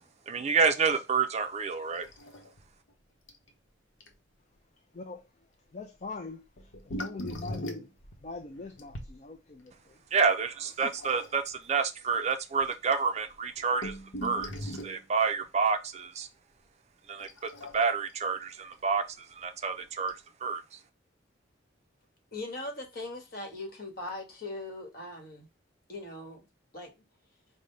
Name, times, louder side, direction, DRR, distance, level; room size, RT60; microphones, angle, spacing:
voice 1, 0.3-2.1 10.1-13.9 14.2-16.3 17.1-17.3 17.7-20.8, right 5 dB, 35° right, 0.4 m, -29 dB
sound 1, 2.0-2.6 2.9-3.0 3.3-3.5 4.0-4.1 6.6-9.1 10.8-11.5 12.3-12.4 12.6-12.7 13.3-15.0 17.2-18.1 19.4-19.5 20.1-20.2, equal, 80° left, 0.9 m, -40 dB
voice 2, 4.9-5.3 5.7-6.5 6.9-7.9 8.2-10.0, left 3 dB, 35° left, 0.4 m, -42 dB
voice 3, 22.3-25.5 25.9-26.5 26.7-26.9, left 2 dB, 50° left, 1.4 m, -40 dB
5.2 x 2.1 x 3.1 m
head